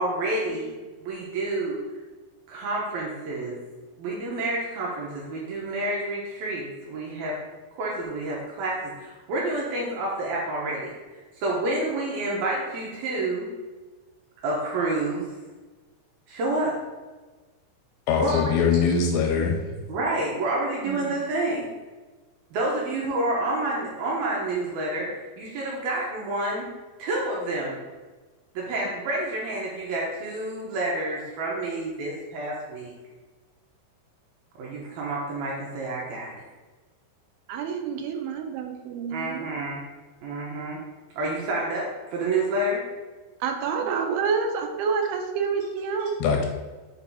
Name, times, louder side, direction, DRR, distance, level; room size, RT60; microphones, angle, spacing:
voice 1, 0.0-1.8 2.5-3.6 4.0-7.4 7.8-13.5 14.4-15.3 16.3-16.8 18.2-18.6 19.9-21.7 22.5-25.1 25.4-26.7 27.0-27.8 28.5-32.9 34.6-36.3 39.1-39.8 40.2-40.8 41.2-41.9 42.1-42.8 46.0-46.1, right 2 dB, 75° right, -4 dB, 2.3 m, -29 dB
voice 2, 18.1-19.6 46.2-46.5, left 6 dB, 85° left, 3 dB, 2.6 m, -22 dB
voice 3, 37.5-39.5 43.4-46.1, right 5 dB, 90° right, 4 dB, 3.1 m, -28 dB
7.2 x 2.7 x 5.3 m, 1.3 s
omnidirectional pair, 5.2 m